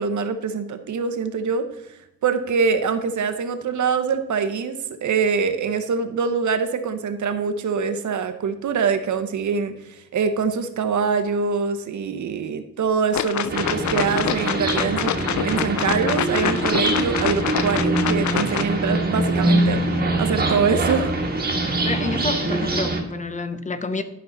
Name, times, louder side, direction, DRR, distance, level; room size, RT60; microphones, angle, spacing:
voice 1, 0.0-1.7 2.2-15.1 15.4-19.8 20.2-21.1, right 5 dB, 85° right, 9 dB, 0.9 m, -24 dB
sound 1, 13.1-18.7, left 11 dB, 80° left, 0.4 m, -26 dB
sound 2, 13.5-23.0, right 2 dB, 35° right, 1.3 m, -23 dB
voice 2, 21.8-24.0, left 3 dB, 25° left, 10 dB, 0.6 m, -28 dB
11.5 x 5.5 x 3.9 m, 0.84 s
wide cardioid pair, 135°, 29 cm